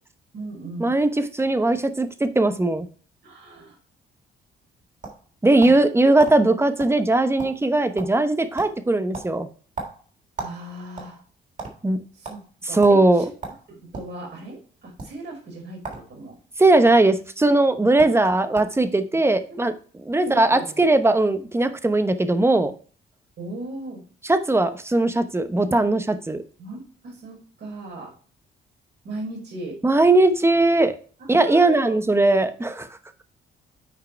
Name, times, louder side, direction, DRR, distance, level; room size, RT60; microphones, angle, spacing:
voice 1, 0.3-1.0 3.2-3.8 5.6-5.7 10.4-11.2 12.1-13.3 13.7-16.4 19.5-19.6 20.2-20.9 23.4-24.0 26.6-28.1 29.0-29.8 31.2-31.9, right 2 dB, 60° right, -1 dB, 4.9 m, -37 dB
voice 2, 1.4-2.9 5.4-9.5 11.8-12.0 12.7-13.2 16.6-19.7 20.0-22.7 24.3-26.4 29.8-31.0 31.3-32.9, right 2 dB, 10° right, 10 dB, 0.9 m, -19 dB
sound 1, 4.6-5.9 6.2-6.4 6.8-7.0 7.2-7.7 8.0-8.3 8.6-8.8 9.1-10.6 10.9-11.7 12.2-12.4 12.8-13.0 13.4-14.1 14.9-15.1 15.8-16.1 16.3-16.9 17.7-17.8 18.0-18.2 18.5-18.8, right 3 dB, 40° right, 3.4 m, -35 dB
9.2 x 4.8 x 4.4 m, 0.41 s
cardioid pair, 90°, 20 cm